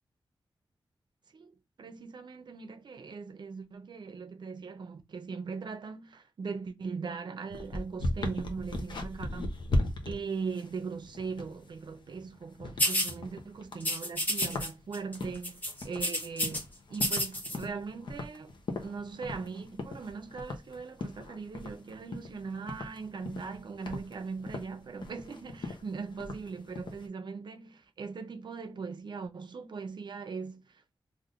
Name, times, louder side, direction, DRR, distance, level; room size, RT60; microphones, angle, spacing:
voice 1, 1.8-9.6 10.1-16.6 16.9-18.5 18.8-31.0, right 5 dB, 55° right, 0.5 m, -40 dB
sound 1, 7.5-27.0, left 2 dB, 60° left, 0.7 m, -38 dB
sound 2, 12.8-13.1 13.8-14.7 14.9-15.2 15.4-16.6 16.9-17.6, equal, 20° left, 0.8 m, -30 dB
3.4 x 2.5 x 2.5 m
wide cardioid pair, 105°, 9 cm